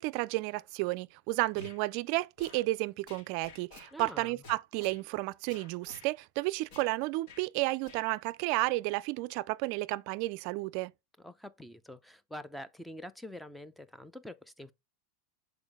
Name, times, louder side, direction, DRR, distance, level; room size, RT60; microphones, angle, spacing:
voice 1, 0.0-10.9, right 21 dB, 55° right, 0.4 m, -32 dB
sound 1, 1.6-1.8 2.4-2.6 3.1-4.1 4.4-5.0 5.5-6.1 6.7-6.9 7.3-7.4 7.8-8.0, left 4 dB, 60° left, 2.7 m, -51 dB
voice 2, 3.9-4.4 11.2-14.7, left 1 dB, ahead, 0.6 m, -46 dB
7.0 x 4.5 x 3.7 m
supercardioid pair, 125°, 0 cm